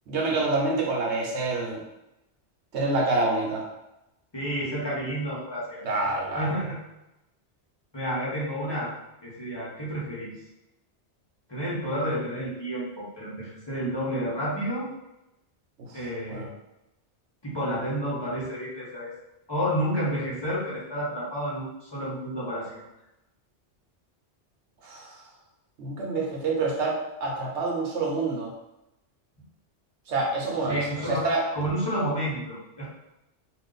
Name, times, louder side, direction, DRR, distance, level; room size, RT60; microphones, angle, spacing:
voice 1, 0.1-1.8 2.7-3.6 5.8-6.5 15.8-15.9 16.3-16.4 24.8-25.2 25.8-28.5 30.1-31.4, right 3 dB, 75° right, -2 dB, 1.1 m, -27 dB
voice 2, 4.3-5.8 6.4-6.8 7.9-8.9 9.2-10.3 11.5-14.9 15.9-16.5 17.4-19.1 19.5-22.8 30.7-31.3 31.5-32.9, equal, 25° left, -7 dB, 0.9 m, -30 dB
2.5 x 2.5 x 3.8 m, 0.91 s
omnidirectional pair, 1.2 m